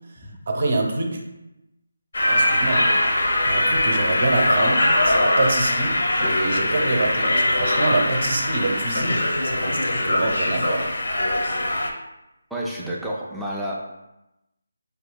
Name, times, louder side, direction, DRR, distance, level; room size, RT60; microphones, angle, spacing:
voice 1, 0.5-1.2 2.2-2.9 3.4-10.9, right 2 dB, 50° right, 2 dB, 0.6 m, -26 dB
sound 1, 2.1-11.9, left 1 dB, 75° left, 0.6 m, -21 dB
voice 2, 12.5-13.7, right 1 dB, ahead, -6 dB, 0.4 m, -30 dB
4.6 x 2.7 x 2.2 m, 0.94 s
figure-of-eight pair, 170°, 0 cm